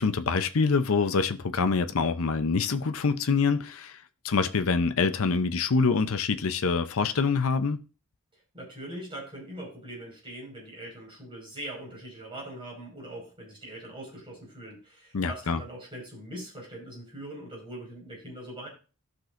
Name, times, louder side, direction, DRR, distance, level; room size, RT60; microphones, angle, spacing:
voice 1, 0.0-4.0 4.2-7.8 15.1-15.6, left 4 dB, 70° left, 0.6 m, -25 dB
voice 2, 8.3-18.7, right 1 dB, 25° right, 5.0 m, -42 dB
17.0 x 6.1 x 2.5 m
head